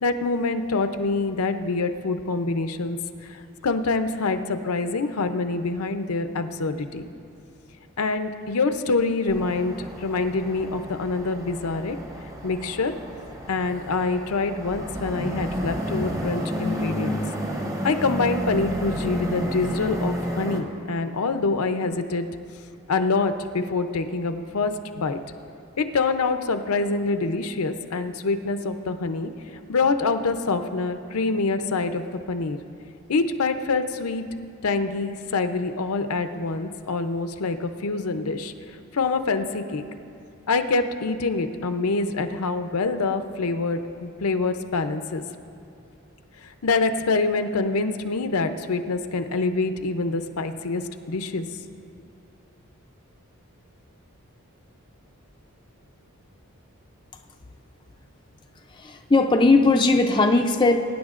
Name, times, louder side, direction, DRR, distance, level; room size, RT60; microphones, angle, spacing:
voice 1, 0.0-3.0 3.2-7.0 8.0-12.0 12.4-12.9 13.5-17.2 17.8-22.3 22.9-25.2 25.8-29.3 29.7-32.6 33.1-34.2 34.6-38.5 38.9-39.8 40.5-45.2 46.4-51.5, left 3 dB, 80° left, 8 dB, 0.6 m, -25 dB
sound 1, 9.3-20.6, equal, 15° right, 0.9 m, -31 dB
voice 2, 58.7-60.8, left 3 dB, 20° left, 4 dB, 0.4 m, -18 dB
23.0 x 9.9 x 2.5 m, 2.5 s
head